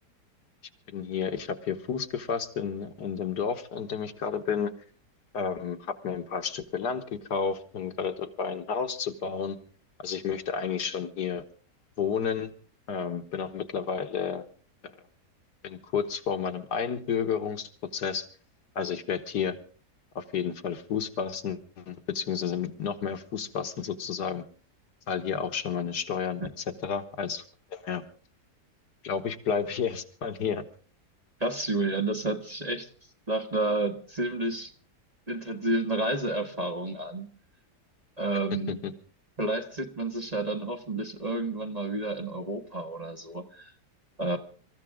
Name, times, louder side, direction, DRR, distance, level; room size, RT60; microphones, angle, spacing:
voice 1, 0.9-4.7 5.3-9.6 10.0-11.4 12.0-12.5 12.9-14.4 14.8-14.9 15.6-18.3 18.8-19.6 20.2-24.4 25.1-26.4 26.8-27.4 27.7-28.0 29.0-30.6 38.7-38.8, left 7 dB, 75° left, 7 dB, 1.9 m, -31 dB
voice 2, 31.4-32.9 33.3-34.7 35.3-37.3 38.2-38.8 39.4-43.7 44.2-44.4, right 2 dB, 25° right, 4 dB, 1.5 m, -30 dB
26.5 x 14.5 x 3.7 m, 0.42 s
omnidirectional pair, 1.8 m